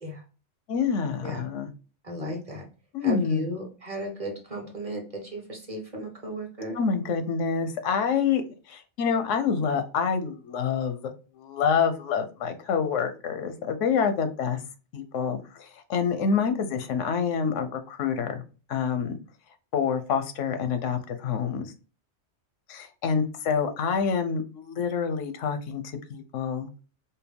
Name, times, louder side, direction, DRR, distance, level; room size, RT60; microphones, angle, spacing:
voice 1, 0.7-1.7 2.9-3.5 6.7-14.6 14.9-18.4 18.7-19.2 19.7-21.7 22.7-25.8 26.1-26.7, left 6 dB, 90° left, 8 dB, 1.0 m, -27 dB
voice 2, 2.0-2.6 3.0-6.8, equal, 30° right, 0 dB, 1.0 m, -35 dB
4.4 x 2.1 x 3.4 m, 0.35 s
omnidirectional pair, 1.2 m